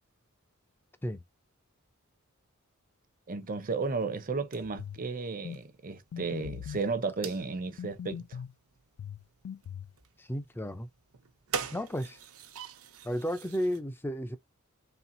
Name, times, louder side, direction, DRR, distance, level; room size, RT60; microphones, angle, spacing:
voice 1, 3.3-8.4, right 4 dB, 40° right, 0.7 m, -34 dB
sound 1, 3.4-13.8, right 6 dB, 90° right, 0.9 m, -45 dB
sound 2, 4.8-5.0 5.4-5.6 6.1-6.9 7.8-8.5 9.0-9.9, left 8 dB, 85° left, 0.3 m, -41 dB
voice 2, 10.2-10.9 11.7-12.2 13.0-14.4, equal, 10° left, 0.5 m, -33 dB
4.3 x 3.3 x 2.6 m
head